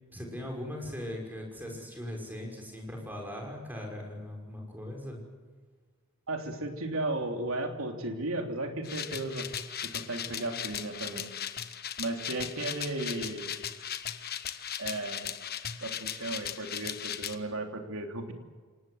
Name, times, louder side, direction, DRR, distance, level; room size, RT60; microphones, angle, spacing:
voice 1, 0.1-5.2, left 1 dB, 10° right, 1 dB, 5.9 m, -39 dB
voice 2, 6.3-9.5 9.8-11.3 12.0-13.5 14.8-15.3 15.8-18.3, right 2 dB, 70° right, 4 dB, 3.3 m, -35 dB
sound 1, 8.8-17.4, left 9 dB, 45° left, 1.3 m, -38 dB
28.0 x 18.5 x 8.1 m, 1.5 s
head